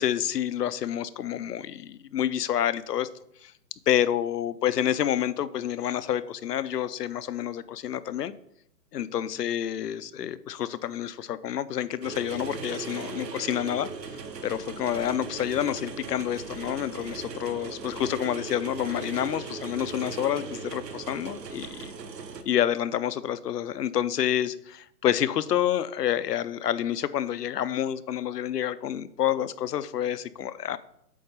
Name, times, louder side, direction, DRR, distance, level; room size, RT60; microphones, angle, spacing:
voice 1, 0.0-3.1 3.4-3.5 3.9-8.3 8.9-21.9 22.5-30.8, left 10 dB, 70° left, 16 dB, 0.6 m, -28 dB
sound 1, 12.0-22.4, right 5 dB, 85° right, 1.2 m, -38 dB
8.4 x 3.9 x 5.6 m, 0.76 s
hypercardioid pair, 175°, 49 cm